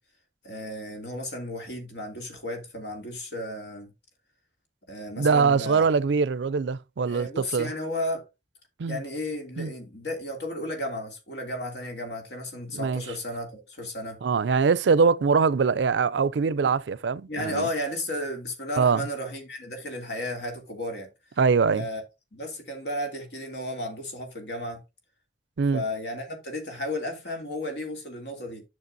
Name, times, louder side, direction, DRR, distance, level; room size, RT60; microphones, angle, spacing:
voice 1, 0.4-3.9 4.9-5.9 7.1-8.2 8.9-14.2 16.6-16.7 17.3-21.1 21.7-22.0 22.3-24.8 25.7-28.6, left 1 dB, 75° left, 2.7 m, -33 dB
voice 2, 5.2-7.7 8.8-9.0 9.6-9.7 12.7-13.0 14.2-17.7 18.8-19.0 21.4-21.9 25.6-25.8, right 5 dB, 85° right, 0.4 m, -23 dB
10.5 x 6.5 x 2.6 m
head